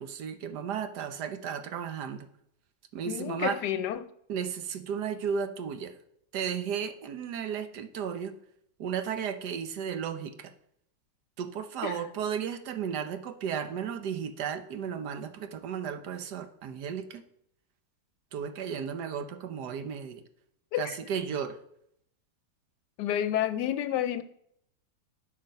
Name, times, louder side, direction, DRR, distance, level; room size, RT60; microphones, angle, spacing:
voice 1, 0.0-2.3 2.9-3.6 4.3-6.0 6.3-8.4 8.8-10.5 11.4-17.2 18.3-20.2 20.8-21.6, right 7 dB, 70° right, 1.4 m, -34 dB
voice 2, 3.1-4.1 11.8-12.0 20.7-21.0 23.0-24.2, left 11 dB, 75° left, 1.2 m, -30 dB
8.4 x 6.4 x 5.4 m
omnidirectional pair, 1.9 m